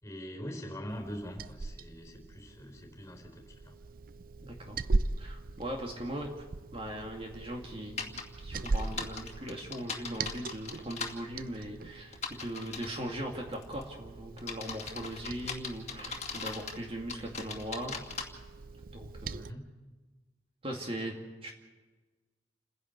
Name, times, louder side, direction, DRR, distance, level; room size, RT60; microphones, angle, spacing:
voice 1, 0.0-3.8 19.4-19.6, equal, 15° left, 3 dB, 4.1 m, -43 dB
Liquid, 0.9-19.5, right 3 dB, 50° right, 0.5 m, -40 dB
voice 2, 4.4-4.8 5.2-6.4 6.7-17.9 18.9-19.6 20.6-21.2 21.4-21.5, right 1 dB, 30° right, 1 dB, 2.4 m, -39 dB
sound 1, 8.0-8.2 8.6-11.1 12.1-13.0 13.5-13.8 14.4-16.8 17.1-18.2, left 5 dB, 40° left, 2.3 m, -39 dB
29.5 x 11.0 x 8.2 m, 1.3 s
head